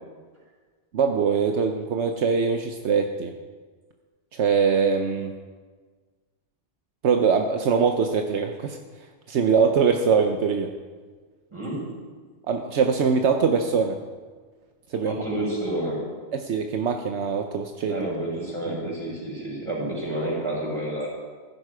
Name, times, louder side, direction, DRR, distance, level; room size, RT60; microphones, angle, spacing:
voice 1, 0.9-3.3 4.3-5.3 7.0-8.8 9.3-10.7 12.5-14.0 14.9-15.2 16.3-18.1 18.7-18.9, right 6 dB, 75° right, 5 dB, 1.1 m, -23 dB
voice 2, 11.5-11.8 15.0-16.0 17.9-21.1, right 1 dB, 25° right, -4 dB, 5.8 m, -29 dB
15.5 x 12.0 x 4.9 m, 1.5 s
omnidirectional pair, 1.2 m